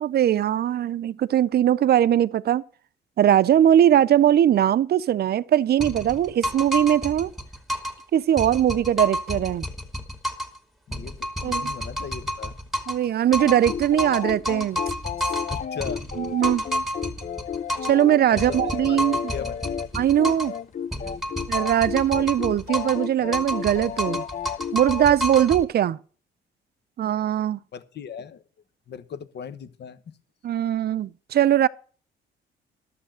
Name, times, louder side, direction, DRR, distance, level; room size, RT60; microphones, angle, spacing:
voice 1, 0.0-2.6 3.2-7.3 8.1-9.7 11.4-11.7 12.9-14.8 16.2-16.6 17.9-19.2 19.9-20.5 21.5-24.2 24.7-26.0 27.0-27.6 30.4-31.7, right 11 dB, 55° right, 0.5 m, -20 dB
sound 1, 5.8-8.0 8.4-10.6 10.9-13.1 13.3-18.0 18.4-20.6 20.9-23.1 23.3-25.6, equal, ahead, 2.3 m, -30 dB
voice 2, 10.9-12.5 15.5-16.1 18.3-18.6 18.9-19.7 27.7-28.4 28.9-30.1, left 7 dB, 60° left, 1.1 m, -37 dB
sound 2, 13.4-25.1, left 7 dB, 40° left, 0.5 m, -33 dB
11.5 x 7.5 x 6.3 m
cardioid pair, 90°, 20 cm